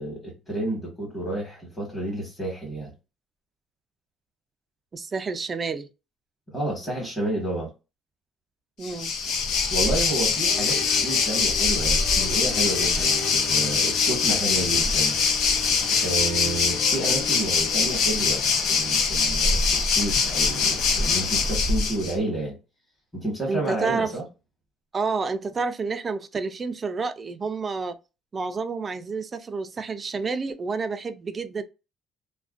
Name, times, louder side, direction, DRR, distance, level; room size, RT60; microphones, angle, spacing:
voice 1, 0.0-2.9 6.5-7.7 9.7-15.2 16.0-22.6 23.1-24.2, right 2 dB, 15° left, 1.2 m, -30 dB
voice 2, 4.9-5.9 8.8-9.1 23.5-24.1 24.9-28.0 28.3-31.6, right 4 dB, 25° right, 0.3 m, -29 dB
Waves surf, 8.8-22.1, left 5 dB, 65° left, 0.5 m, -23 dB
sound 1, 10.4-17.9, left 4 dB, 40° left, 0.8 m, -39 dB
2.4 x 2.2 x 2.4 m
cardioid pair, 140°, 0 cm